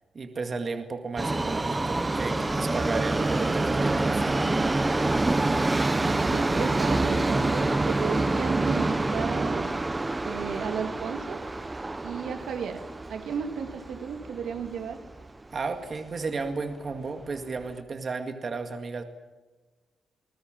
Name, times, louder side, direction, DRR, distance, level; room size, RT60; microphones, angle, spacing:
voice 1, 0.1-4.5 15.5-19.0, right 4 dB, 35° right, 6 dB, 2.1 m, -33 dB
Subway metro underground, 1.2-15.3 15.6-15.7 16.5-16.6 16.9-17.0 17.6-17.7, right 2 dB, 15° right, 1.0 m, -27 dB
voice 2, 6.2-9.7 10.2-11.4 12.0-12.8 13.1-15.0, right 7 dB, 70° right, 6 dB, 2.7 m, -34 dB
28.5 x 20.0 x 7.6 m, 1.2 s
cardioid pair, 145°, 0 cm